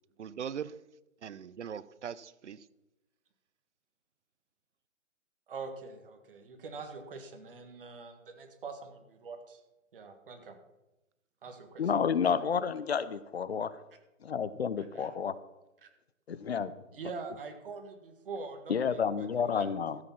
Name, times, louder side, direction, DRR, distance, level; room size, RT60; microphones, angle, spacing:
voice 1, 0.2-0.7 1.2-2.6, right 8 dB, 60° right, 18 dB, 0.6 m, -40 dB
voice 2, 5.5-9.6 9.9-10.6 11.4-12.2 14.8-15.1 15.8-15.9 16.9-19.7, right 4 dB, 40° right, 5 dB, 1.7 m, -44 dB
voice 3, 11.8-13.7 14.2-15.3 16.3-16.7 18.7-20.0, left 7 dB, 50° left, 15 dB, 0.7 m, -30 dB
14.0 x 7.1 x 5.8 m, 0.97 s
hypercardioid pair, 170°, 40 cm